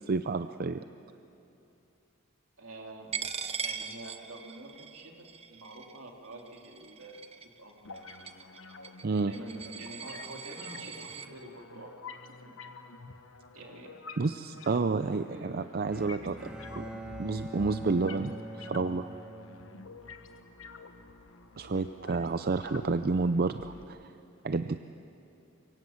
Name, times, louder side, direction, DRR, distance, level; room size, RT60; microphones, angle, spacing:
voice 1, 0.1-0.8 9.0-9.3 14.2-16.3 16.8-16.9 17.2-19.1 21.6-24.1 24.4-24.8, right 3 dB, 45° right, 10 dB, 0.5 m, -30 dB
voice 2, 2.6-3.1 3.4-5.1 5.5-7.3 7.6-7.8 9.1-11.9 12.3-12.5 13.5-13.9 14.6-15.9 16.2-16.4, right 2 dB, 75° right, 1 dB, 2.9 m, -47 dB
Coin (dropping), 3.1-11.3, right 6 dB, 30° right, 0.9 m, -41 dB
sound 1, 7.8-23.8, left 3 dB, 70° left, 1.3 m, -48 dB
Bowed string instrument, 15.9-20.1, right 1 dB, 5° right, 2.2 m, -43 dB
25.5 x 24.0 x 7.4 m, 2.8 s
head